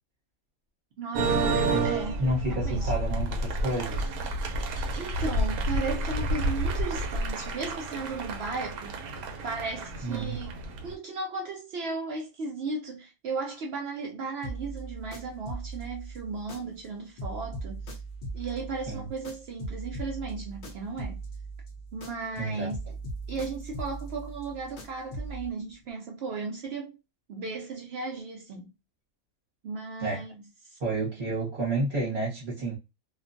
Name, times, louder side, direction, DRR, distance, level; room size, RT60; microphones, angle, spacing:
voice 1, 1.0-2.2 2.5-2.9 4.9-9.0 9.4-17.9 18.3-21.2 21.9-23.0 23.3-27.0 27.3-28.7 29.6-30.8, right 3 dB, 65° right, 0.6 m, -36 dB
sound 1, 1.1-10.9, right 2 dB, 85° right, 1.1 m, -30 dB
voice 2, 1.7-4.1 10.0-10.4 18.9-19.1 22.4-22.7 30.0-30.2 30.8-32.8, right 2 dB, 40° right, 1.0 m, -30 dB
sound 2, 14.4-16.9 17.2-22.4 22.7-25.5, right 2 dB, 60° left, 0.5 m, -39 dB
2.4 x 2.2 x 2.5 m
omnidirectional pair, 1.5 m